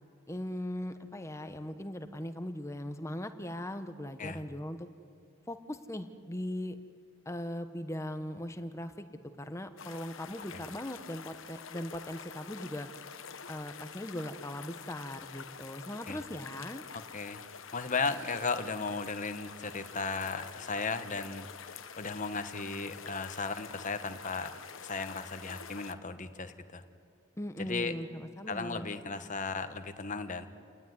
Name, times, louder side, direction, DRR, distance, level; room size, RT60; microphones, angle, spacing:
voice 1, 0.3-4.9 5.5-6.8 7.2-9.1 9.4-12.9 13.5-16.8 27.4-28.9, left 1 dB, 15° left, 9 dB, 1.1 m, -39 dB
sound 1, 9.8-25.9, left 6 dB, 65° left, 1.1 m, -47 dB
voice 2, 17.7-26.8 27.7-28.0 28.5-30.5, left 4 dB, 35° left, 8 dB, 1.3 m, -36 dB
29.5 x 19.5 x 9.6 m, 2.3 s
head